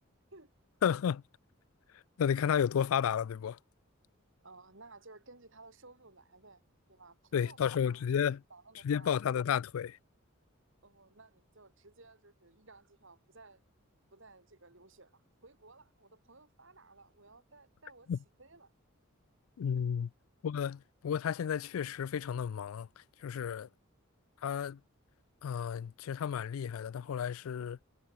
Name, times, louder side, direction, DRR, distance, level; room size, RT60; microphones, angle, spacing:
voice 1, 0.8-1.2 2.2-3.6 7.3-8.4 8.8-10.0 18.1-18.2 19.6-20.1 20.4-22.9 23.2-23.7 24.4-24.8 25.4-27.8, left 8 dB, 80° left, 0.3 m, -32 dB
voice 2, 4.4-6.6 6.9-8.0 8.5-9.3 10.8-13.6 14.1-18.1 18.4-18.7 19.8-19.9 23.5-23.7, right 3 dB, 60° right, 4.7 m, -57 dB
head